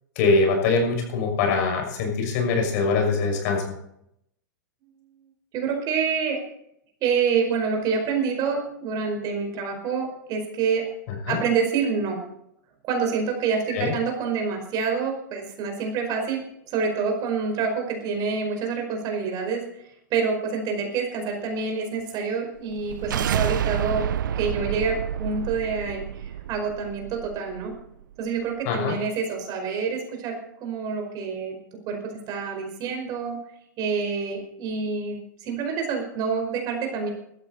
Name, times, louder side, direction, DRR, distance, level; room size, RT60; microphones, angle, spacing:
voice 1, 0.2-3.6 11.2-11.4 13.7-13.9 28.7-29.0, left 4 dB, 55° left, 2 dB, 6.0 m, -23 dB
voice 2, 5.5-6.4 7.0-10.9 11.3-12.2 12.8-16.4 16.7-19.6 20.1-24.0 24.3-27.7 28.2-31.5 31.9-32.0 32.3-33.4 33.8-37.1, right 5 dB, 40° right, 4 dB, 4.7 m, -27 dB
sound 1, 22.7-27.8, right 9 dB, 80° right, 0.6 m, -29 dB
15.5 x 13.5 x 4.2 m, 0.76 s
hypercardioid pair, 120°, 11 cm